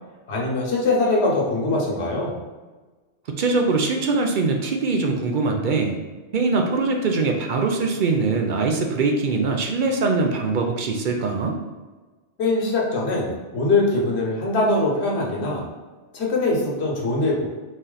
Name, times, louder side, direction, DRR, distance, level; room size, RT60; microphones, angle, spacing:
voice 1, 0.3-2.4 12.4-15.7 16.1-17.5, left 2 dB, 80° left, -2 dB, 1.3 m, -22 dB
voice 2, 3.3-6.0 6.3-11.6, right 3 dB, 55° right, 3 dB, 0.6 m, -22 dB
4.1 x 3.1 x 3.9 m, 1.3 s
omnidirectional pair, 1.1 m